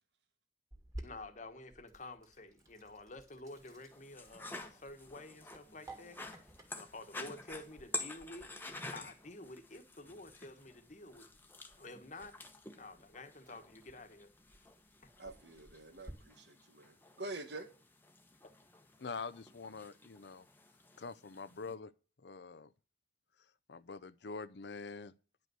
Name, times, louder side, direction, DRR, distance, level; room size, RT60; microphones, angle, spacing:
Sink (filling or washing), 0.7-16.1, right 1 dB, 20° right, 2.3 m, -57 dB
voice 1, 1.0-6.4 6.7-8.6 8.9-11.3 11.8-12.5 12.8-14.3, left 2 dB, 40° left, 1.3 m, -50 dB
sound 1, 3.5-21.7, left 2 dB, 10° left, 1.0 m, -50 dB
voice 2, 15.2-17.7, right 2 dB, 70° right, 1.6 m, -46 dB
voice 3, 19.0-20.5 21.0-21.9 22.2-22.7 23.7-25.1, left 4 dB, 70° left, 0.6 m, -45 dB
10.5 x 5.4 x 7.6 m
head